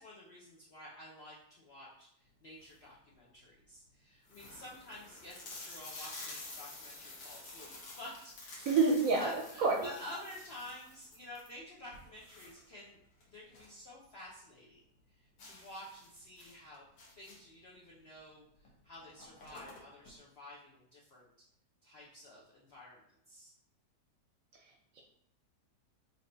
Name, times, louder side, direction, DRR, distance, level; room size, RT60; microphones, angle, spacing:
voice 1, 0.0-8.7 9.2-13.0 13.3-16.8 17.2-21.3 21.8-23.0 23.3-23.5, left 1 dB, 65° left, -5 dB, 0.6 m, -50 dB
sound 1, 2.4-2.9 3.5-3.6 3.9-4.0 4.3-13.8 14.1-14.2 14.6-14.7 15.4-17.6 18.6-18.7 19.0-20.1, left 2 dB, 80° left, 1.5 m, -50 dB
voice 2, 8.7-9.9 24.6-24.7 25.0-25.1, right 4 dB, 70° right, 1 dB, 0.8 m, -28 dB
3.3 x 2.8 x 3.8 m, 0.74 s
omnidirectional pair, 1.8 m